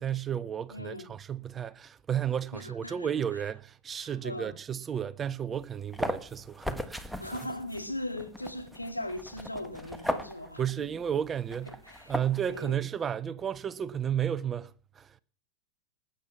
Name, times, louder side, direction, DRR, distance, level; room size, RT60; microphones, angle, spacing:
voice 1, 0.0-7.2 10.6-11.8 12.1-15.2, right 9 dB, 20° right, 0.7 m, -33 dB
voice 2, 0.7-1.1 2.5-3.5 4.0-4.5 7.2-10.9 11.7-12.2 12.5-12.8, left 1 dB, 85° left, 2.1 m, -39 dB
sound 1, 5.5-12.6, equal, ahead, 1.5 m, -38 dB
19.5 x 9.1 x 5.8 m
figure-of-eight pair, 90°, 0 cm